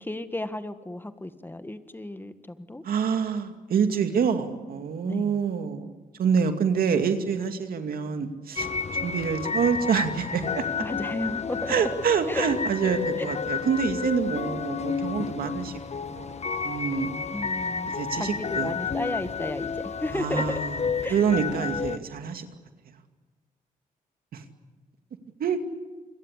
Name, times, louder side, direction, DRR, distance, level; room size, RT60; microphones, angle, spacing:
voice 1, 0.0-2.8 5.0-5.4 10.8-11.8 12.3-12.5 17.3-20.6 21.0-21.2, left 1 dB, 15° left, 10 dB, 1.7 m, -33 dB
voice 2, 2.8-5.9 6.2-8.7 9.0-10.6 11.7-16.4 16.6-17.2 17.8-18.7 20.1-20.8 21.1-22.5 24.3-24.4 25.4-25.6, right 6 dB, 75° right, 6 dB, 2.5 m, -26 dB
sound 1, 8.6-22.0, left 5 dB, 45° left, 1.4 m, -31 dB
28.5 x 22.0 x 8.3 m, 1.3 s
cardioid pair, 70°, 15 cm